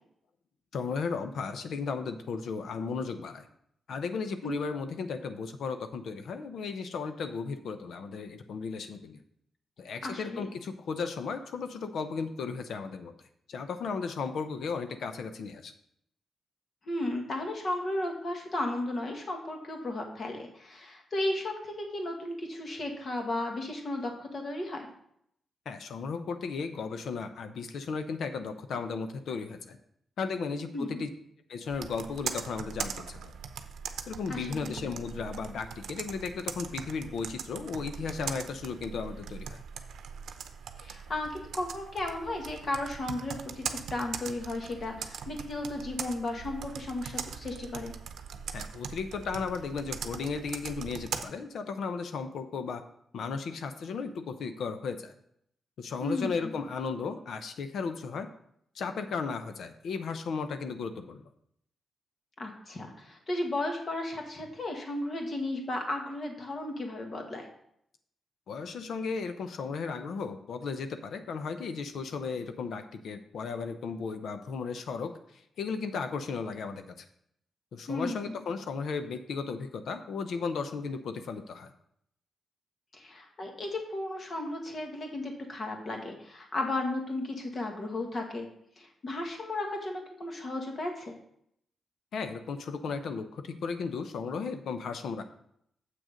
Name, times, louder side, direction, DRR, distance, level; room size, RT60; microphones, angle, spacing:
voice 1, 0.7-3.4 3.9-9.2 9.8-13.1 13.5-15.7 25.7-29.8 30.2-31.1 31.5-33.2 34.1-39.6 48.5-52.8 53.1-55.1 55.8-58.3 58.7-61.2 68.5-75.1 75.6-77.0 77.7-81.7 92.1-95.2, left 5 dB, 70° left, 9 dB, 0.7 m, -35 dB
voice 2, 10.0-10.4 16.8-24.9 30.7-31.0 34.3-34.8 40.8-47.9 56.0-56.6 62.4-67.5 77.9-78.4 82.9-88.5 88.8-91.1, left 2 dB, 40° left, 2 dB, 1.6 m, -34 dB
Computer keyboard, 31.7-51.2, right 7 dB, 90° right, 0.7 m, -41 dB
7.7 x 6.4 x 5.1 m, 0.71 s
wide cardioid pair, 145°, 0 cm